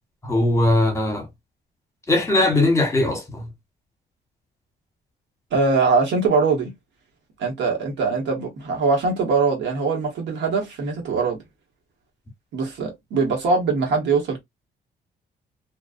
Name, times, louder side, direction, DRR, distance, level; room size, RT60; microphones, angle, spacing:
voice 1, 0.2-1.3 2.1-3.5, left 2 dB, 15° left, 1.0 m, -20 dB
voice 2, 5.5-6.7 7.4-11.4 12.5-14.4, right 4 dB, 85° right, 1.2 m, -22 dB
2.4 x 2.3 x 2.4 m
cardioid pair, 100°, 18 cm